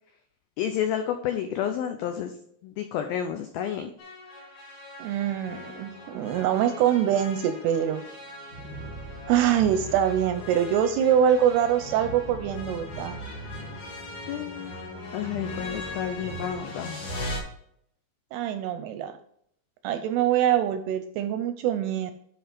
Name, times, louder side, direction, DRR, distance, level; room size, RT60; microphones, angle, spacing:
voice 1, 0.6-2.3 2.6-3.9 14.3-14.7 15.1-17.0, left 9 dB, 85° left, 6 dB, 2.1 m, -30 dB
sound 1, 4.0-17.4, left 1 dB, 50° left, 3.2 m, -39 dB
voice 2, 5.0-8.0 9.3-13.2 18.3-19.2 19.8-22.1, right 9 dB, 80° right, 9 dB, 2.4 m, -24 dB
10.5 x 4.6 x 5.1 m, 0.69 s
omnidirectional pair, 5.1 m